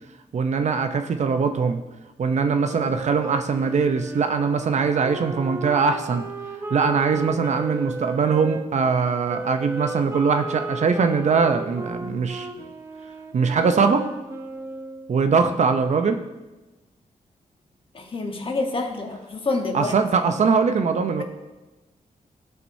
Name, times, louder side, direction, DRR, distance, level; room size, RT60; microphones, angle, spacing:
voice 1, 0.3-1.8 2.2-6.3 6.7-12.5 13.3-14.1 15.1-16.2 19.7-21.2, right 5 dB, 55° right, 7 dB, 0.6 m, -21 dB
Wind instrument woodwind instrument, 2.7-8.6 9.3-15.1, right 3 dB, 20° right, 0.7 m, -35 dB
voice 2, 17.9-20.0, left 3 dB, 40° left, 3 dB, 1.2 m, -27 dB
15.5 x 5.9 x 2.7 m, 1.1 s
wide cardioid pair, 120°, 14 cm